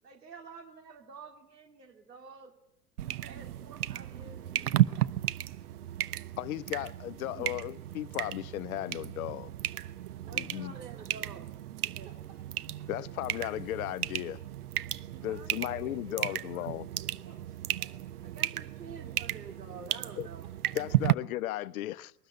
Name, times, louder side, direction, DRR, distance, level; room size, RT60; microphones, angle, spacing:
voice 1, 0.0-2.6 3.1-5.2 7.3-7.5 10.3-11.4 11.8-12.1 15.2-16.5 18.2-20.5, right 5 dB, 85° right, 2.6 m, -49 dB
sound 1, 3.0-21.1, right 14 dB, 70° right, 0.9 m, -34 dB
voice 2, 6.4-9.5 10.3-10.7 12.9-14.4 15.2-16.9 20.2-20.3 20.8-22.1, left 14 dB, 60° left, 0.8 m, -35 dB
voice 3, 14.8-15.9 17.0-19.5 20.6-20.8, right 6 dB, 50° right, 4.8 m, -58 dB
21.5 x 19.0 x 8.0 m
figure-of-eight pair, 90°, 48 cm